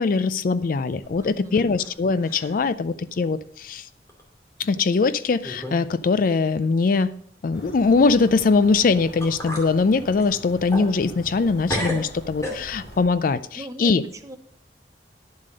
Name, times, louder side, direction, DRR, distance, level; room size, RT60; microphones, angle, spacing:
voice 1, 0.0-3.9 4.6-7.1 7.4-14.0, left 4 dB, 50° left, 15 dB, 0.4 m, -21 dB
sound 1, 1.0-1.9 2.2-2.7 3.1-3.2 4.1-4.2 4.9-5.0 5.4-5.8 6.1-6.2 8.8-8.9 9.2-9.7 10.2-11.4 11.7-13.0, equal, 20° left, 2.3 m, -33 dB
voice 2, 1.2-1.6 13.5-14.4, right 1 dB, 20° right, 7 dB, 0.9 m, -38 dB
sound 2, 7.5-13.0, equal, 90° left, 4.1 m, -43 dB
11.0 x 7.5 x 5.1 m, 0.66 s
head